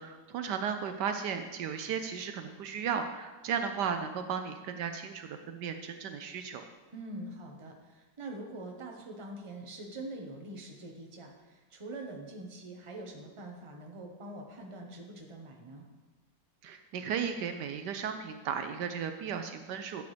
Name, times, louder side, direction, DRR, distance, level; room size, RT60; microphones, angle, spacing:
voice 1, 0.0-6.6 16.6-20.1, right 7 dB, 75° right, 7 dB, 1.2 m, -35 dB
voice 2, 6.9-15.8, right 2 dB, 20° right, 1 dB, 1.0 m, -44 dB
13.0 x 8.3 x 3.3 m, 1.2 s
omnidirectional pair, 1.9 m